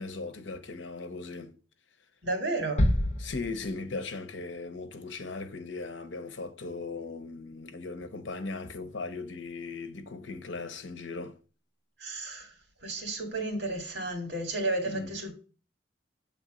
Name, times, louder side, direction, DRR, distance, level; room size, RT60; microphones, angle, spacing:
voice 1, 0.0-1.6 3.2-11.4 14.9-15.1, left 3 dB, 85° left, 0.9 m, -38 dB
voice 2, 2.2-2.9 12.0-12.5 12.8-15.3, right 2 dB, 65° right, 2.2 m, -32 dB
sound 1, 2.8-4.2, equal, 40° left, 0.8 m, -28 dB
7.1 x 3.5 x 5.0 m
head